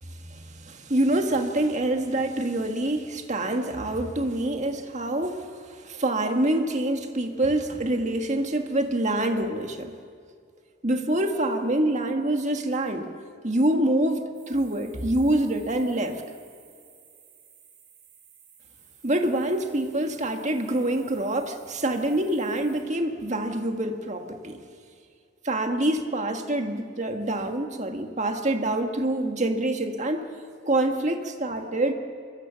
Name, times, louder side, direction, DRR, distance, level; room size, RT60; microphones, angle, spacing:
voice 1, 0.2-9.9 10.8-13.1 13.4-16.2 19.0-24.6 25.4-30.3 30.7-31.9, right 1 dB, 35° right, 4 dB, 1.8 m, -26 dB
sound 1, 14.3-22.8, right 7 dB, 85° right, 7.1 m, -55 dB
25.0 x 23.0 x 7.1 m, 2.2 s
head